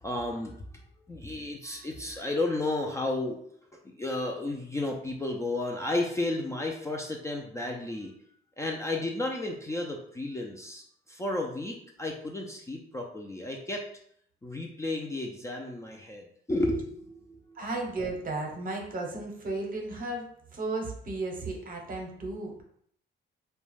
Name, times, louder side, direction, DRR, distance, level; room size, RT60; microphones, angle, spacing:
voice 1, 0.0-0.8 1.1-3.4 4.0-8.1 8.6-13.8 14.4-17.6, left 2 dB, 15° left, -1 dB, 0.3 m, -33 dB
voice 2, 17.5-22.6, right 2 dB, 45° right, 1 dB, 0.7 m, -34 dB
2.3 x 2.1 x 3.1 m, 0.66 s
cardioid pair, 90°, 20 cm